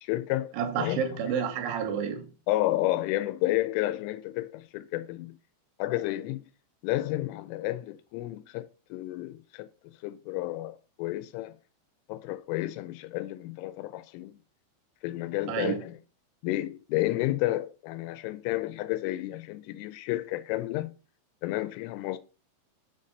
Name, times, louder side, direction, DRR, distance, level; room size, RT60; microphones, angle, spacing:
voice 1, 0.0-1.0 2.5-5.4 5.8-6.5 6.8-11.6 12.1-14.4 15.0-16.0 16.4-20.9 21.4-22.2, left 16 dB, 90° left, 3.0 m, -31 dB
voice 2, 0.6-2.3 15.5-15.9, right 7 dB, 85° right, 3.0 m, -30 dB
7.0 x 2.7 x 5.2 m
omnidirectional pair, 5.5 m